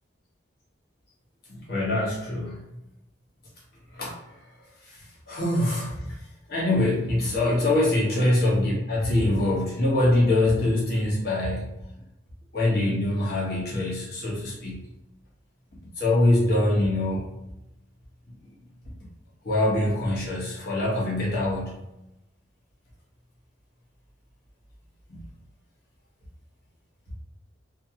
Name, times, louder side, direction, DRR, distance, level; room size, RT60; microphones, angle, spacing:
voice 1, 1.5-2.6 3.9-4.2 4.9-5.0 5.3-6.0 6.5-11.7 12.5-14.8 16.0-17.2 19.4-21.8 25.1-25.2, left 1 dB, 55° left, -6 dB, 1.0 m, -24 dB
2.7 x 2.4 x 2.8 m, 0.90 s
head